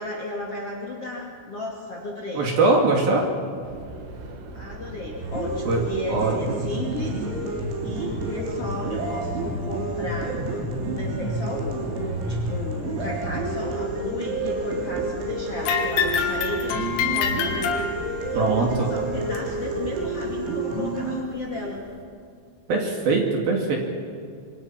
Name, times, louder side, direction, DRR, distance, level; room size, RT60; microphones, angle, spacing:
voice 1, 0.0-2.5 4.5-21.8, left 2 dB, 40° left, -1 dB, 2.7 m, -34 dB
voice 2, 2.4-3.2 5.7-5.8 6.1-6.6 18.4-18.9 22.7-23.8, right 3 dB, 55° right, 1 dB, 3.8 m, -22 dB
sound 1, 3.6-20.4, right 2 dB, 70° right, 4.8 m, -39 dB
sound 2, 5.2-21.2, right 2 dB, 85° right, 6.3 m, -29 dB
sound 3, 15.6-18.4 19.4-19.5 20.3-20.4 21.3-21.4, left 7 dB, 90° left, 4.6 m, -26 dB
27.0 x 25.0 x 5.9 m, 2.3 s
omnidirectional pair, 5.9 m